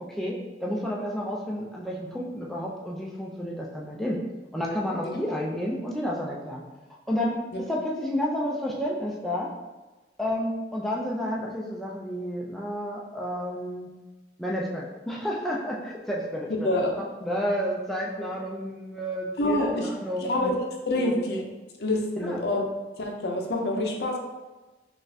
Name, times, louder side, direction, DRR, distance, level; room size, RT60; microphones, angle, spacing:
voice 1, 0.1-4.2 4.5-6.6 7.1-7.4 7.7-9.5 10.2-13.9 14.4-20.5 20.9-21.2 22.2-22.4, equal, ahead, -4 dB, 0.3 m, -31 dB
voice 2, 16.6-17.0 19.4-19.9 20.2-20.5 20.9-21.4 21.8-22.6 23.0-24.2, left 1 dB, 65° left, 1 dB, 0.5 m, -26 dB
3.9 x 2.4 x 2.6 m, 1.2 s
head